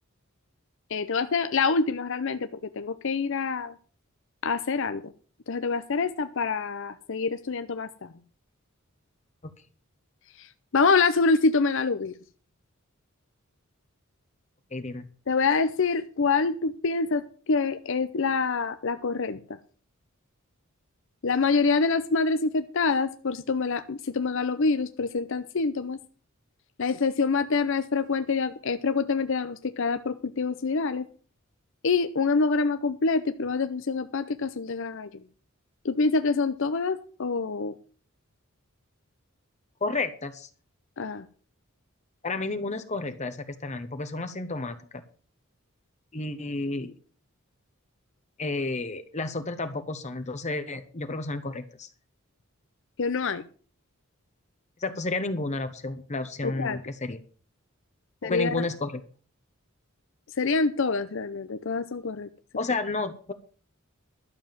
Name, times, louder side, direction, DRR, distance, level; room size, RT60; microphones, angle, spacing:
voice 1, 0.9-2.5 2.8-3.7 4.4-5.1 5.5-8.1 10.4-12.1 15.3-19.4 21.2-26.0 26.8-31.1 31.8-35.2 35.8-37.7 41.0-41.3 53.0-53.4 56.4-56.8 58.2-58.7 60.4-62.3, left 4 dB, 65° left, 10 dB, 0.7 m, -26 dB
voice 2, 14.7-15.1 39.8-40.5 42.2-45.0 46.1-46.9 48.4-51.9 54.8-57.2 58.2-59.0 62.6-63.3, left 2 dB, 35° left, 9 dB, 1.0 m, -31 dB
12.0 x 7.1 x 7.4 m, 0.41 s
head